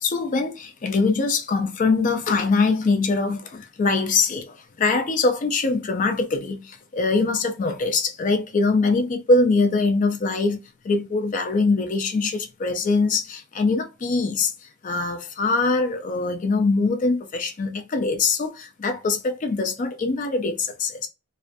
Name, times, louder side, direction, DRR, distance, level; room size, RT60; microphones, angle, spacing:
voice 1, 0.0-21.1, left 3 dB, 35° left, 0.3 m, -23 dB
2.4 x 2.1 x 2.5 m
head